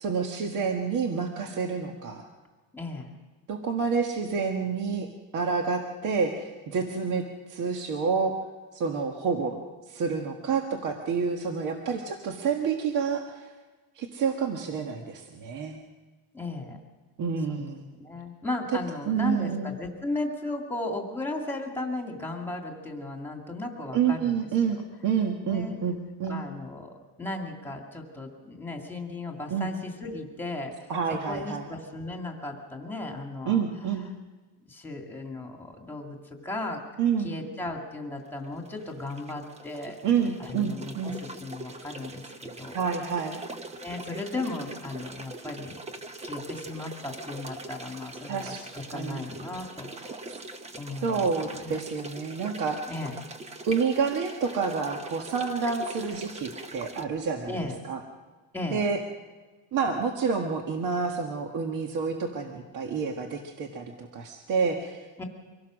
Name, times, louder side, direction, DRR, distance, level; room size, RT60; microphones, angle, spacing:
voice 1, 0.0-2.2 3.5-5.1 5.3-8.4 8.7-9.6 9.9-13.5 14.0-15.8 17.2-17.8 19.1-19.7 23.9-26.4 29.5-29.7 30.9-31.7 33.4-34.0 37.0-37.4 40.0-41.2 42.7-43.4 48.3-48.6 48.9-49.3 51.0-52.8 53.6-57.6 57.8-58.0 58.7-59.0 59.7-65.2, right 5 dB, 45° right, 3 dB, 1.6 m, -28 dB
voice 2, 2.7-3.1 16.3-16.8 17.5-17.6 18.0-24.4 25.4-25.8 26.3-26.9 27.2-30.9 31.3-33.6 34.7-36.8 37.2-40.0 40.4-42.7 43.7-45.8 46.2-50.2 50.7-51.3 51.5-51.7 52.9-53.2 57.5-57.8 58.5-58.8 65.2-65.3, left 2 dB, 5° left, 2 dB, 2.2 m, -36 dB
sound 1, 38.4-57.1, right 2 dB, 15° right, 0.8 m, -42 dB
24.5 x 17.0 x 6.4 m, 1.3 s
cardioid pair, 170°, 41 cm